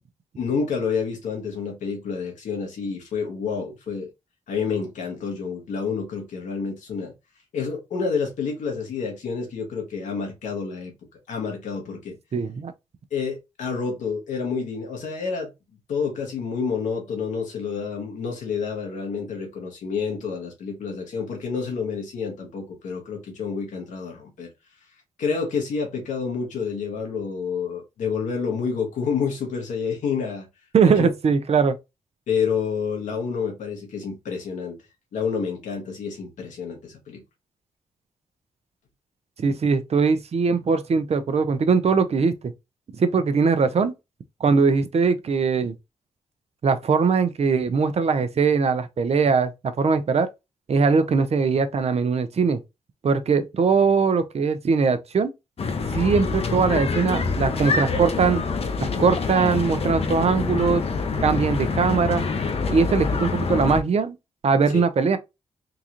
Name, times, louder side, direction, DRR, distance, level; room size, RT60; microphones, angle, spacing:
voice 1, 0.3-4.1 4.5-7.1 7.5-10.9 11.3-12.2 13.1-15.5 15.9-24.5 25.2-30.5 30.8-31.1 32.3-34.8 35.1-37.2 64.7-64.8, left 5 dB, 90° left, 1.4 m, -29 dB
voice 2, 12.3-12.7 30.7-31.8 39.4-42.5 43.0-43.9 44.4-45.7 46.6-49.5 49.8-50.3 50.7-52.6 53.0-55.3 55.9-58.4 58.8-60.8 61.2-62.2 62.7-64.2 64.4-65.2, right 5 dB, 55° right, 0.7 m, -21 dB
sound 1, 55.6-63.8, left 4 dB, 55° left, 0.7 m, -26 dB
3.8 x 2.4 x 2.9 m
cardioid pair, 60°, 13 cm